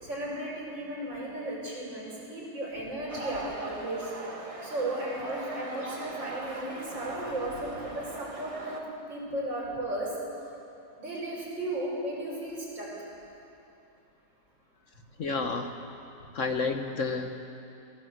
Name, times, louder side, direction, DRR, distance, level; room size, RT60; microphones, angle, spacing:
voice 1, 0.0-4.1 4.6-10.1 11.0-12.9, right 1 dB, 85° right, -5 dB, 6.7 m, -35 dB
sound 1, 3.1-8.8, right 2 dB, 20° right, 1.5 m, -40 dB
voice 2, 15.2-15.7 16.3-17.3, left 4 dB, 50° left, 6 dB, 1.2 m, -30 dB
22.0 x 18.0 x 8.0 m, 2.8 s
omnidirectional pair, 2.0 m